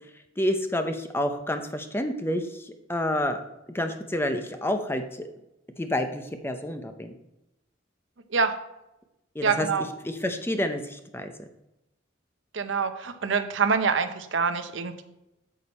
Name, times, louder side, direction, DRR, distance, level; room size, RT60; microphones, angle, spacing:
voice 1, 0.4-3.4 3.7-5.3 5.8-7.1 9.3-11.3, left 1 dB, 10° left, 7 dB, 0.6 m, -29 dB
voice 2, 9.4-9.8 12.5-15.0, right 5 dB, 70° right, 9 dB, 0.7 m, -25 dB
8.7 x 7.0 x 4.2 m, 0.92 s
head